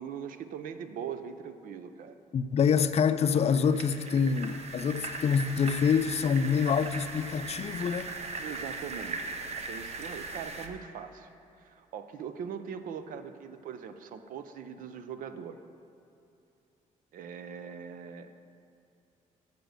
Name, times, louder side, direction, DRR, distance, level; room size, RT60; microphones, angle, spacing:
voice 1, 0.0-2.2 8.4-11.3 11.6-15.6 17.1-18.3, right 7 dB, 75° right, 10 dB, 0.6 m, -41 dB
voice 2, 2.3-8.1, left 6 dB, 50° left, 12 dB, 0.4 m, -26 dB
sound 1, 3.5-10.7, right 3 dB, 50° right, 0.9 m, -39 dB
7.9 x 6.8 x 6.5 m, 2.7 s
cardioid pair, 80°, 14 cm